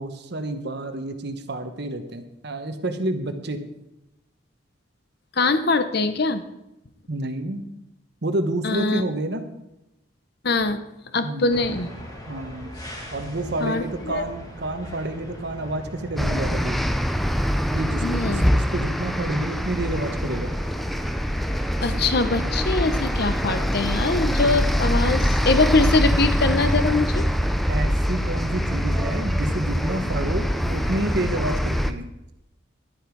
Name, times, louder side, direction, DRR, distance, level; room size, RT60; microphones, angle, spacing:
voice 1, 0.0-3.6 7.1-7.6 8.2-9.4 11.2-11.5 12.3-12.7 13.1-16.8 17.7-20.5 27.7-32.1, right 1 dB, 55° right, 8 dB, 1.1 m, -29 dB
voice 2, 5.4-6.4 8.6-9.0 10.4-10.8 11.1-11.9 13.6-14.2 18.0-18.5 21.8-27.2, left 3 dB, 55° left, 10 dB, 0.9 m, -22 dB
sound 1, 11.5-31.1, equal, 20° left, 2.1 m, -40 dB
sound 2, 16.2-31.9, equal, ahead, 0.5 m, -24 dB
11.5 x 10.5 x 4.7 m, 0.90 s
head